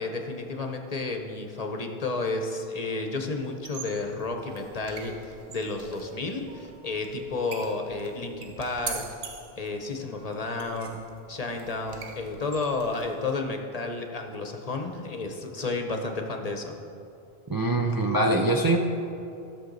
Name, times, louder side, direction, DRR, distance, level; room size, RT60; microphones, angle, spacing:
voice 1, 0.0-9.0 9.6-11.0 11.3-16.8, left 3 dB, 40° left, 4 dB, 0.8 m, -32 dB
sound 1, 3.5-13.4, right 5 dB, 80° right, 1.1 m, -44 dB
voice 2, 17.5-18.8, right 2 dB, 30° right, 1 dB, 0.4 m, -23 dB
14.5 x 6.6 x 3.9 m, 2.7 s
omnidirectional pair, 1.0 m